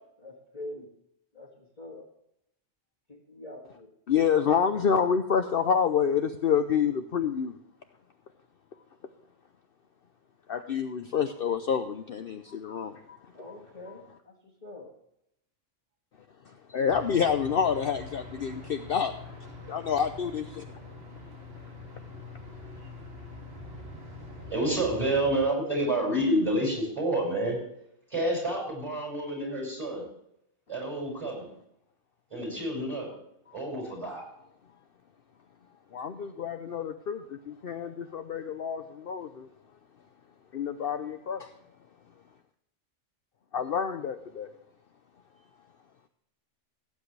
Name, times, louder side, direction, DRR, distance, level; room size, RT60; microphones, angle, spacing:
voice 1, 0.2-0.9 1.3-2.1 3.1-3.9 4.3-5.0 13.3-14.3 14.6-14.9, left 1 dB, 30° left, -2 dB, 2.0 m, -44 dB
voice 2, 4.1-7.6 10.5-13.2 16.5-19.1 19.7-20.6 35.9-39.5 40.5-41.5 43.5-44.5, left 7 dB, 55° left, 7 dB, 0.9 m, -28 dB
sound 1, 16.9-25.4, left 2 dB, 50° right, 2.8 m, -44 dB
voice 3, 24.5-27.6 28.1-30.1 30.7-31.5 32.3-33.1 33.5-34.3, right 1 dB, 25° right, -1 dB, 5.7 m, -28 dB
17.5 x 8.6 x 3.3 m, 0.77 s
omnidirectional pair, 1.3 m